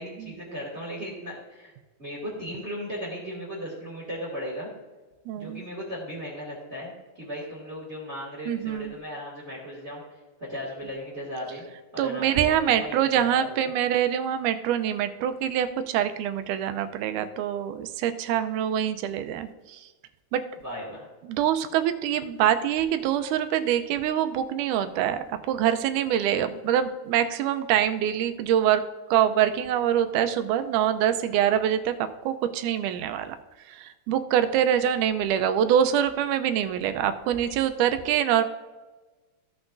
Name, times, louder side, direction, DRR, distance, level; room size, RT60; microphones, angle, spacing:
voice 1, 0.0-1.7 2.0-4.7 5.3-6.9 7.2-10.0 10.4-11.6 11.9-13.7 20.6-21.1, equal, 25° right, -4 dB, 2.1 m, -36 dB
voice 2, 5.3-5.6 8.5-9.0 12.0-19.8 20.3-20.4 21.3-28.8 29.1-31.9 32.3-33.4 33.7-38.4, right 10 dB, 85° right, 9 dB, 2.1 m, -25 dB
16.0 x 6.0 x 2.6 m, 1.2 s
omnidirectional pair, 3.6 m